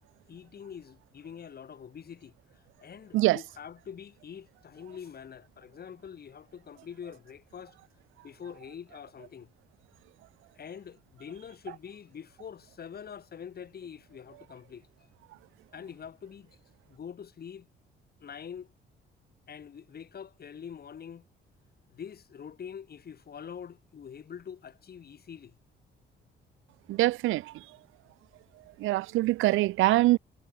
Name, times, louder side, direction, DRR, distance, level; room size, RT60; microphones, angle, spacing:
voice 1, 0.3-7.8 8.2-9.5 10.6-14.9 15.7-16.6 16.9-17.7 18.2-18.7 19.5-21.3 21.9-25.6, left 7 dB, 50° left, 4.5 m, -45 dB
voice 2, 26.9-27.6 28.8-30.2, right 18 dB, 85° right, 0.5 m, -24 dB
cardioid pair, 90°, 20 cm